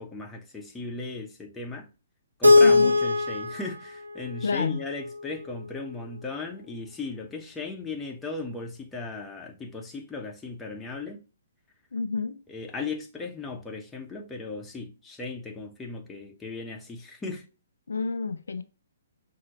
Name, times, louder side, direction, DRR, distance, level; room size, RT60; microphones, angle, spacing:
voice 1, 0.0-1.9 2.4-11.2 12.5-17.5, left 3 dB, 10° left, 0.9 m, -37 dB
Keyboard (musical), 2.4-5.4, left 3 dB, 75° right, 1.0 m, -21 dB
voice 2, 2.6-2.9 4.4-4.8 11.9-12.4 17.9-18.6, left 4 dB, 65° left, 0.4 m, -29 dB
6.0 x 2.7 x 2.9 m
figure-of-eight pair, 125°, 0 cm